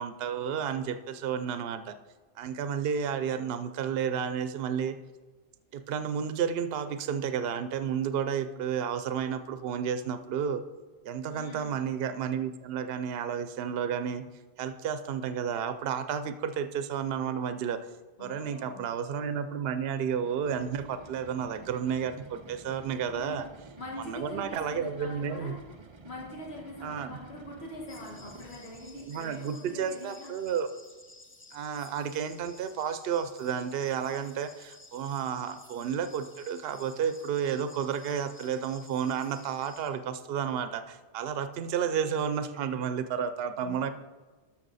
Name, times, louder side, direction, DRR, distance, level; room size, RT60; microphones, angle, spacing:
voice 1, 0.0-1.9 2.4-5.0 5.7-10.6 11.0-14.2 14.6-17.8 18.2-23.4 24.0-25.6 26.8-27.2 29.0-30.7 31.5-43.9, right 7 dB, 65° right, 11 dB, 0.8 m, -31 dB
voice 2, 11.3-11.8 18.2-18.9 23.1-23.4 23.8-25.6 26.1-30.3 43.6-43.9, left 1 dB, 70° left, -2 dB, 1.9 m, -43 dB
sound 1, 20.1-29.2, right 3 dB, 35° right, 0.5 m, -51 dB
sound 2, 27.9-39.9, left 2 dB, 15° left, 0.6 m, -54 dB
12.5 x 6.0 x 4.1 m, 1.3 s
omnidirectional pair, 1.1 m